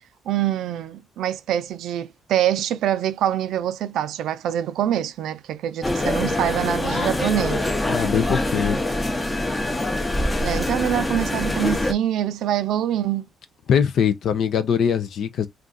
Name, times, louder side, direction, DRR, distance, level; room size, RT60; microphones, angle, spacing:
voice 1, 0.3-7.7 10.4-13.3, right 11 dB, 80° right, 0.3 m, -25 dB
sound 1, 5.8-11.9, left 1 dB, 20° left, 0.7 m, -24 dB
voice 2, 7.9-8.8 13.7-15.5, left 8 dB, 65° left, 0.4 m, -22 dB
2.5 x 2.3 x 3.8 m
cardioid pair, 90°, 0 cm